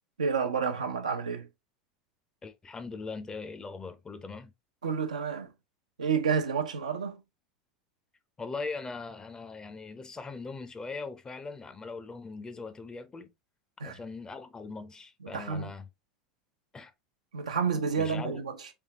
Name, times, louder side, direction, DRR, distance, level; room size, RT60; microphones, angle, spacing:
voice 1, 0.2-1.5 4.8-5.5 6.0-7.2 13.8-14.0 15.2-15.7 17.3-18.7, right 6 dB, 85° right, 0.7 m, -30 dB
voice 2, 2.4-4.5 8.4-13.3 13.8-15.9 16.7-16.9 17.7-18.4, left 4 dB, 20° left, 0.7 m, -40 dB
3.5 x 3.5 x 2.9 m
hypercardioid pair, 85°, 4 cm